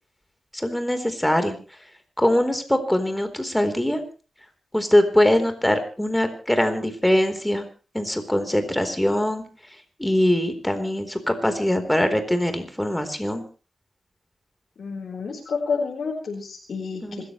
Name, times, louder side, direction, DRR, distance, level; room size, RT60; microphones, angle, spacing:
voice 1, 0.5-1.6 2.2-4.0 4.7-7.6 7.9-9.4 10.0-13.4 17.0-17.2, left 1 dB, 10° left, 8 dB, 4.1 m, -22 dB
voice 2, 14.8-17.2, left 5 dB, 70° left, -2 dB, 4.6 m, -29 dB
26.5 x 14.0 x 3.3 m, 0.37 s
cardioid pair, 75°, 0 cm